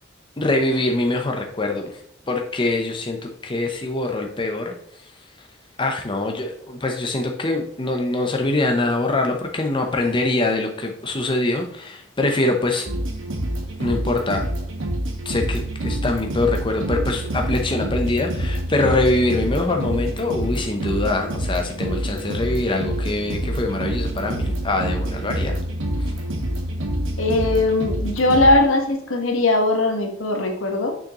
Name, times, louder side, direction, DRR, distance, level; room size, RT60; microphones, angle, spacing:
voice 1, 0.4-1.9 2.3-4.7 5.8-12.9 13.8-14.4 15.2-25.6 26.0-26.1, left 2 dB, 25° left, 3 dB, 0.8 m, -23 dB
sound 1, 12.9-28.5, right 1 dB, 70° right, 1.4 m, -27 dB
voice 2, 27.2-30.9, left 2 dB, 80° left, 3 dB, 1.4 m, -19 dB
6.4 x 6.4 x 3.0 m, 0.70 s
head